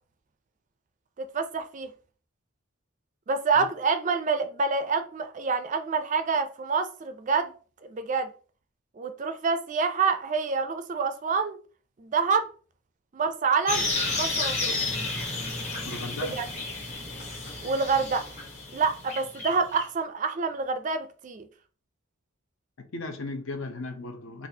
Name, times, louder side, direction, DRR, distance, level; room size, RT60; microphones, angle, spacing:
voice 1, 1.2-1.9 3.3-7.5 7.8-8.3 9.0-11.6 12.0-12.5 13.1-13.9 14.1-14.8 16.2-16.5 17.6-18.2 18.7-21.5, right 5 dB, 35° right, 0.4 m, -27 dB
sound 1, 13.7-19.8, left 3 dB, 35° left, 1.1 m, -32 dB
voice 2, 15.8-16.4 22.8-24.5, left 2 dB, 70° left, 0.6 m, -36 dB
4.0 x 2.4 x 2.7 m
head